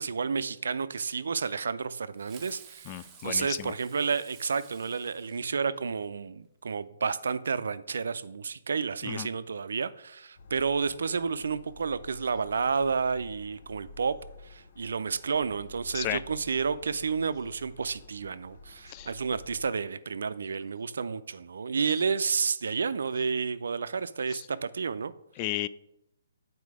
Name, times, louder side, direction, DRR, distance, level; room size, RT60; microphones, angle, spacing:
voice 1, 0.0-14.2 14.4-25.1, right 5 dB, 75° right, 0.4 m, -31 dB
Fireworks, 2.2-6.0, right 8 dB, 20° right, 0.8 m, -53 dB
voice 2, 2.9-3.7 9.0-9.3 15.9-16.2 18.9-19.1 24.3-24.5 25.4-25.7, left 14 dB, 30° left, 0.3 m, -34 dB
sound 1, 10.4-19.7, left 3 dB, 55° left, 0.7 m, -50 dB
8.4 x 4.4 x 4.8 m
hypercardioid pair, 150°, 0 cm